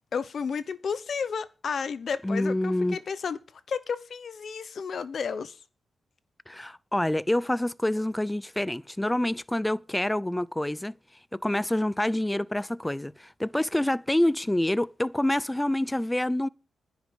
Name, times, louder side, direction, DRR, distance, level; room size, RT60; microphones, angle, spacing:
voice 1, 0.1-3.4 3.7-5.6, left 6 dB, 65° left, 1.1 m, -32 dB
voice 2, 2.2-3.0 6.5-11.0 11.3-16.5, left 1 dB, 10° left, 0.6 m, -27 dB
10.5 x 9.6 x 7.0 m
cardioid pair, 65°, 0 cm